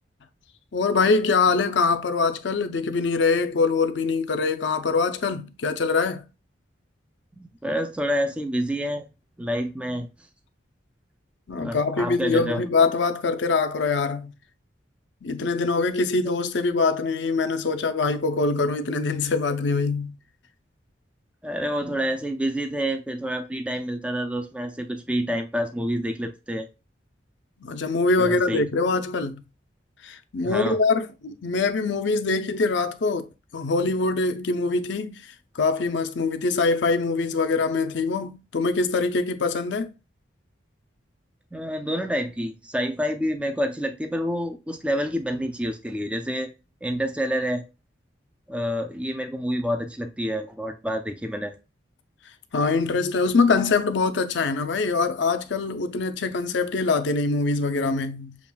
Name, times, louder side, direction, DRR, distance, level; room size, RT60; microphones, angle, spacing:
voice 1, 0.7-6.2 11.5-14.3 15.2-20.1 27.6-29.4 30.0-33.3 33.5-35.1 35.6-39.9 52.5-58.4, left 4 dB, 70° left, 0.5 m, -23 dB
voice 2, 7.4-9.1 9.4-10.1 11.6-12.6 21.4-26.7 28.2-28.7 30.4-30.8 41.5-46.5 46.8-47.6 48.5-51.5 52.8-53.0, equal, 5° right, 0.4 m, -28 dB
7.1 x 2.4 x 2.2 m
head